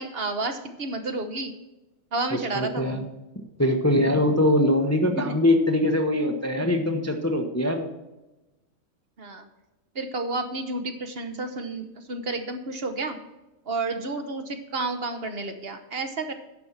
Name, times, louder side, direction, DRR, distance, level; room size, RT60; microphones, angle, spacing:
voice 1, 0.0-1.5 2.1-3.0 5.2-5.3 9.2-9.5 9.9-13.2 13.7-16.3, right 2 dB, 50° right, 7 dB, 1.1 m, -31 dB
voice 2, 2.3-3.1 3.6-7.9, left 1 dB, 15° left, 4 dB, 0.7 m, -22 dB
10.5 x 5.2 x 7.2 m, 1.0 s
omnidirectional pair, 1.4 m